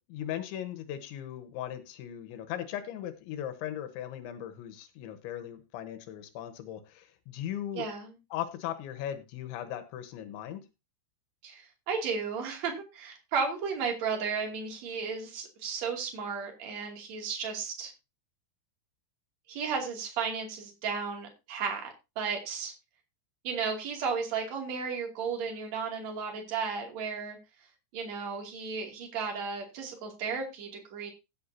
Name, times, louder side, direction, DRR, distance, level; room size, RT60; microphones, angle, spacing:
voice 1, 0.1-7.9 8.3-10.6, left 11 dB, 85° left, 9 dB, 3.3 m, -38 dB
voice 2, 7.7-8.1 11.4-17.9 19.5-22.7 23.4-27.4 27.9-31.1, right 5 dB, 45° right, 2 dB, 3.2 m, -34 dB
15.5 x 8.5 x 2.7 m, 0.25 s
omnidirectional pair, 5.4 m